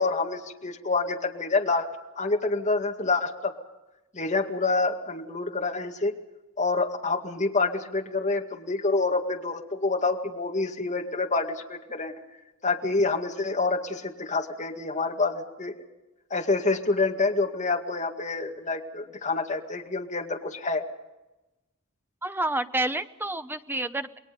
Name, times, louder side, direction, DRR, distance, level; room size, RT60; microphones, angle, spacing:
voice 1, 0.0-1.9 2.2-3.5 4.1-6.1 6.6-12.1 12.6-15.7 16.3-20.8, left 3 dB, 35° left, 3 dB, 2.1 m, -27 dB
voice 2, 22.2-24.2, right 2 dB, 10° right, 10 dB, 0.9 m, -29 dB
28.5 x 21.5 x 5.3 m, 1.0 s
head